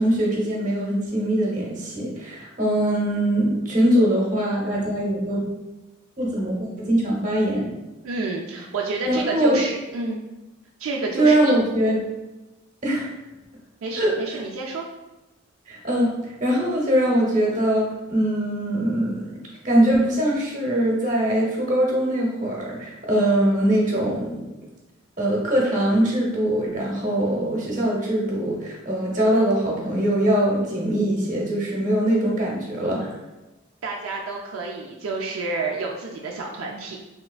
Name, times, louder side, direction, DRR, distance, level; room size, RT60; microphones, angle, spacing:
voice 1, 0.0-5.5 6.2-7.7 9.1-9.6 11.2-12.1 12.8-13.1 13.9-14.1 15.7-16.1 16.4-19.3 19.6-24.4 25.2-33.2, right 1 dB, 40° right, -3 dB, 0.8 m, -22 dB
voice 2, 8.0-10.2 10.8-11.5 13.8-14.8 33.8-37.0, right 3 dB, 80° right, -1 dB, 0.4 m, -29 dB
3.3 x 2.9 x 2.3 m, 1.1 s
head